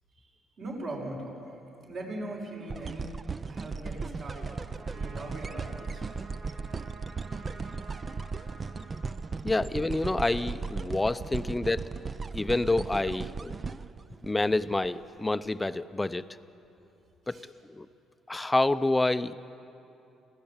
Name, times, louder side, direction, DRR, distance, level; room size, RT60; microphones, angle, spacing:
voice 1, 0.6-3.1 3.5-4.6 4.9-6.0 17.2-17.5, right 1 dB, 60° right, -2 dB, 6.3 m, -40 dB
sound 1, 2.7-14.9 15.5-15.6, right 4 dB, 30° right, 0.5 m, -37 dB
Trumpet, 4.6-9.8, right 2 dB, 75° right, 5.8 m, -51 dB
voice 2, 9.4-11.8 12.3-13.6 14.2-16.2 17.3-17.4 17.8-17.9 18.3-19.3, left 2 dB, 15° left, 13 dB, 0.6 m, -27 dB
25.0 x 16.5 x 8.9 m, 2.8 s
cardioid pair, 95°, 0 cm